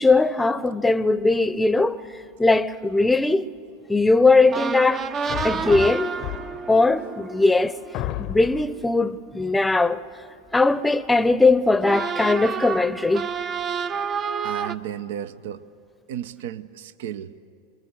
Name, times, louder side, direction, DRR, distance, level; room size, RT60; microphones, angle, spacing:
voice 1, 0.0-2.0 2.4-3.5 3.9-5.0 5.4-6.1 6.7-7.7 8.3-10.0 10.5-13.3, left 3 dB, 10° left, 0.8 m, -19 dB
sound 1, 4.5-9.3 11.8-14.8, right 6 dB, 30° right, 0.7 m, -30 dB
sound 2, 5.3-6.8 7.4-7.5 7.9-8.8, left 15 dB, 50° left, 0.7 m, -32 dB
voice 2, 14.4-15.6 16.1-17.3, right 10 dB, 70° right, 0.7 m, -33 dB
25.5 x 22.5 x 7.9 m
hypercardioid pair, 95°, 0 cm